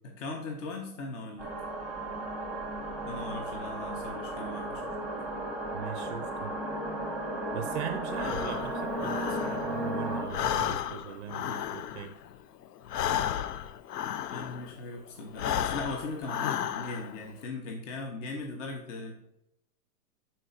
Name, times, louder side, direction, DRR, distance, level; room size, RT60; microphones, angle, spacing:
voice 1, 0.0-1.5 3.1-4.9 14.3-19.1, left 3 dB, 50° left, 2 dB, 1.1 m, -39 dB
sound 1, 1.4-10.3, right 1 dB, ahead, 0.8 m, -34 dB
voice 2, 5.7-6.6 7.5-12.1, right 9 dB, 50° right, 10 dB, 0.4 m, -40 dB
Breathing, 8.1-9.9 10.2-14.8 15.3-17.2, left 10 dB, 80° left, 0.6 m, -33 dB
10.5 x 4.4 x 2.6 m, 0.81 s
hypercardioid pair, 140°, 47 cm